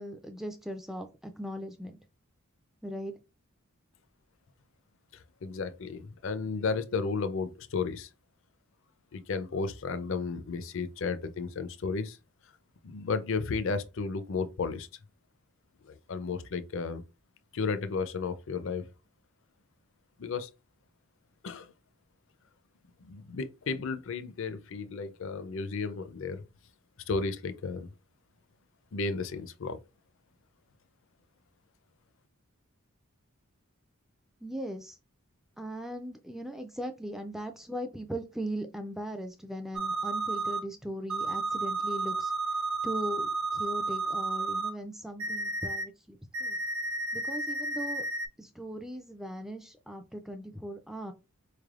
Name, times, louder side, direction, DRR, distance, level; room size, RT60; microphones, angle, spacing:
voice 1, 0.0-2.0 2.8-3.1 34.4-35.0 35.6-42.3 42.8-46.6 47.1-48.1 48.4-51.1, equal, ahead, 0.3 m, -39 dB
voice 2, 5.1-8.1 9.1-12.2 12.8-14.9 15.8-17.0 17.5-18.9 20.2-20.5 21.4-21.7 23.1-26.4 27.1-27.9 28.9-29.8, left 4 dB, 60° left, 0.5 m, -33 dB
sound 1, 39.7-40.6 41.1-44.7 45.2-45.8 46.3-48.3, right 3 dB, 65° right, 1.0 m, -32 dB
4.3 x 3.3 x 2.4 m
head